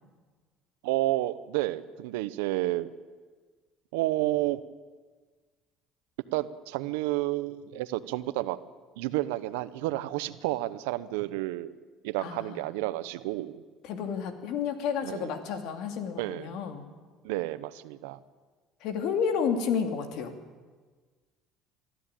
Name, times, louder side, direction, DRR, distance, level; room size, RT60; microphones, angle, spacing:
voice 1, 0.8-2.9 3.9-4.6 6.3-8.6 9.0-11.7 12.0-13.6 15.0-15.3 16.2-16.5 17.2-18.2, right 17 dB, 90° right, 15 dB, 0.9 m, -30 dB
voice 2, 12.2-12.6 13.8-16.8 18.8-20.4, left 6 dB, 70° left, 7 dB, 2.7 m, -31 dB
23.0 x 13.5 x 9.0 m, 1.4 s
supercardioid pair, 90°, 0 cm